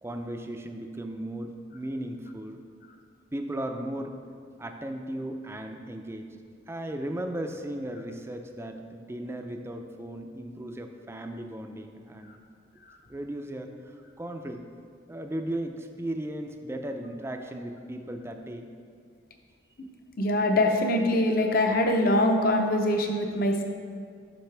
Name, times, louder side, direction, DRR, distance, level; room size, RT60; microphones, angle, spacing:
voice 1, 0.0-2.6 3.3-4.2 4.6-6.3 6.7-12.4 13.1-14.6 15.1-18.7, right 1 dB, 15° right, 5 dB, 0.4 m, -36 dB
voice 2, 20.2-23.6, left 1 dB, 50° left, 3 dB, 0.7 m, -23 dB
10.0 x 5.7 x 3.3 m, 2.2 s
head